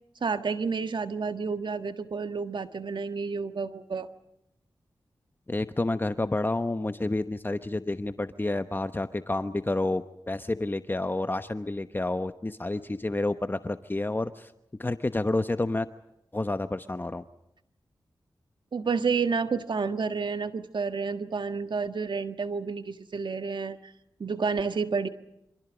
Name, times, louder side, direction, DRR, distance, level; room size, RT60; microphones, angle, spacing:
voice 1, 0.2-4.1 18.7-23.9 24.2-25.1, right 5 dB, 70° right, 9 dB, 1.6 m, -30 dB
voice 2, 5.5-14.5 14.8-15.9 16.3-17.2, left 2 dB, 25° left, 10 dB, 1.0 m, -29 dB
28.0 x 26.5 x 5.1 m, 0.82 s
cardioid pair, 60°, 8 cm